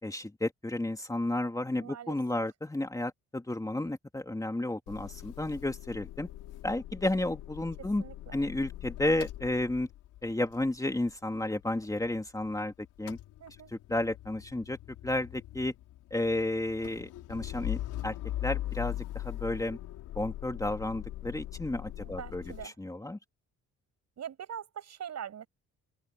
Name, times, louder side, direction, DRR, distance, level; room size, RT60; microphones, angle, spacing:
voice 1, 0.0-6.3 6.6-8.0 8.3-9.9 10.2-12.7 13.0-13.2 13.9-14.8 15.0-15.7 16.1-18.2 18.4-19.8 20.1-23.2, left 1 dB, 10° left, 2.6 m, -32 dB
voice 2, 1.8-2.1 8.0-8.4 13.4-13.7 22.0-22.7 24.2-25.5, right 9 dB, 60° right, 6.4 m, -42 dB
Motor vehicle (road) / Engine starting / Idling, 4.9-12.6 12.8-22.7, left 14 dB, 90° left, 5.1 m, -41 dB
open air
cardioid pair, 90°, 30 cm